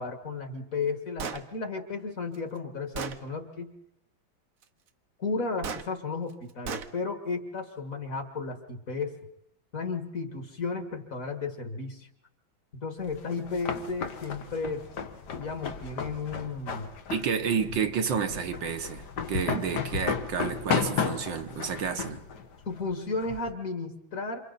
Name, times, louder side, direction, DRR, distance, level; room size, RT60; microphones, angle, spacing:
voice 1, 0.0-3.7 5.2-9.2 9.7-12.1 12.7-14.9 15.4-16.9 19.5-19.6 22.7-24.5, left 4 dB, 45° left, 2.3 m, -34 dB
Gunshot gunfire, 1.2-1.4 2.3-2.4 3.0-3.2 5.6-5.9 6.7-6.9, right 6 dB, 50° right, 1.2 m, -34 dB
sound 1, 13.1-23.5, left 6 dB, 60° left, 1.8 m, -34 dB
voice 2, 17.1-22.2, right 7 dB, 70° right, 1.8 m, -30 dB
28.5 x 28.0 x 4.2 m
omnidirectional pair, 2.2 m